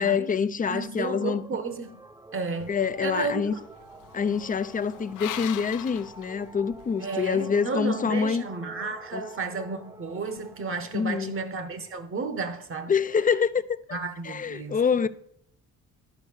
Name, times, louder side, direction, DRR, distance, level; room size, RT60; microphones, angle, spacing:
voice 1, 0.0-1.5 2.7-3.5 4.1-8.4 9.1-9.2 10.9-11.4 12.9-14.0 14.2-15.1, left 6 dB, 25° left, 0.5 m, -26 dB
voice 2, 0.7-2.0 2.3-2.7 3.0-3.6 7.0-12.9 13.9-14.8, right 4 dB, 45° right, 1.3 m, -32 dB
sound 1, 1.1-13.0, right 2 dB, 10° right, 0.7 m, -49 dB
sound 2, 2.6-6.9, left 12 dB, 85° left, 0.6 m, -42 dB
10.5 x 5.2 x 6.5 m
cardioid pair, 90°, 30 cm